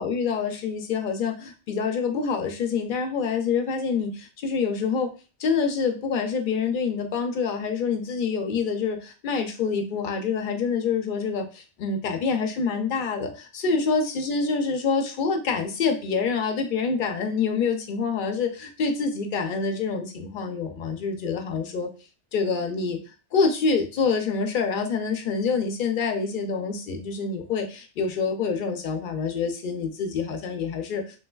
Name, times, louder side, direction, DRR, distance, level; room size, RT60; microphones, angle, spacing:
voice 1, 0.0-5.1 5.4-21.9 22.3-23.0 23.3-31.0, left 5 dB, 55° left, 5 dB, 0.6 m, -26 dB
3.2 x 3.1 x 2.3 m, 0.34 s
omnidirectional pair, 1.2 m